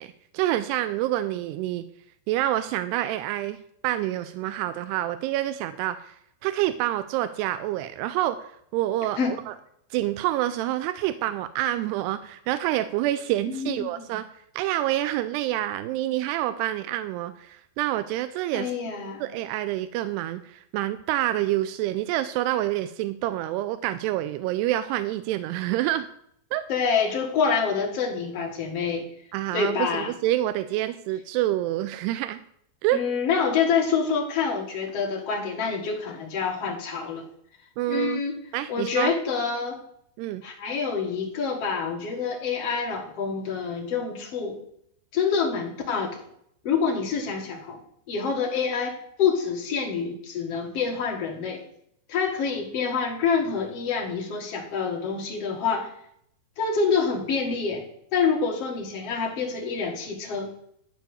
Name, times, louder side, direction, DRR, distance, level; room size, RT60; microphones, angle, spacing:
voice 1, 0.0-1.9 2.3-3.6 3.8-6.2 6.4-9.6 9.9-14.3 14.5-18.7 19.2-26.1 26.5-26.7 29.3-32.4 32.8-33.0 37.8-38.2 38.5-39.1 40.2-40.4, right 14 dB, 85° right, 11 dB, 2.5 m, -27 dB
voice 2, 13.5-14.2 18.5-19.2 26.7-29.0 29.5-30.1 32.9-37.2 37.9-38.4 38.7-39.8 40.4-44.6 45.1-46.2 46.6-47.8 48.1-51.6 52.1-55.9 56.6-57.8 58.1-60.5, left 5 dB, 55° left, 0 dB, 1.7 m, -27 dB
12.5 x 4.8 x 8.0 m, 0.71 s
omnidirectional pair, 5.0 m